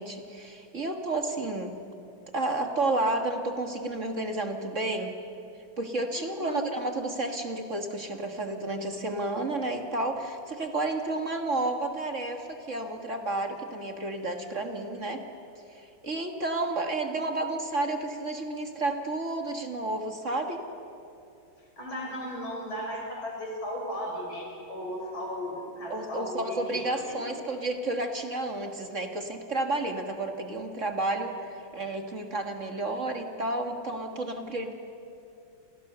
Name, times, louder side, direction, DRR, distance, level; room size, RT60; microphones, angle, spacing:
voice 1, 0.0-1.8 2.3-5.1 5.8-15.2 15.7-20.6 25.9-34.7, right 2 dB, 40° right, 4 dB, 1.9 m, -31 dB
voice 2, 6.1-6.6 21.8-27.5, equal, 80° left, -1 dB, 7.0 m, -36 dB
29.0 x 28.5 x 6.9 m, 2.7 s
omnidirectional pair, 2.2 m